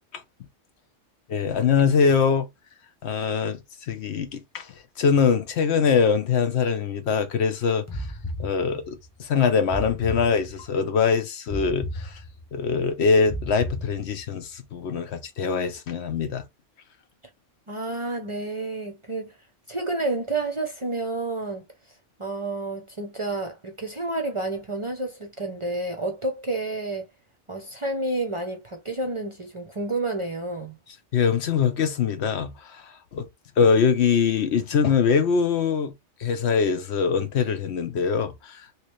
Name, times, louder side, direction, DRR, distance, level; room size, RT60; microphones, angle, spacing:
voice 1, 1.3-2.5 3.0-8.1 8.4-12.2 12.5-16.5 31.1-33.3 33.6-35.9 36.2-38.7, left 6 dB, 65° left, 1.0 m, -23 dB
sound 1, 7.9-9.1 9.7-10.8 11.5-12.6 13.3-14.4, equal, 20° left, 0.6 m, -34 dB
voice 2, 17.7-19.4 19.7-21.6 22.2-27.1 27.5-30.8, right 2 dB, 35° right, 0.6 m, -30 dB
3.1 x 3.0 x 3.1 m
omnidirectional pair, 1.2 m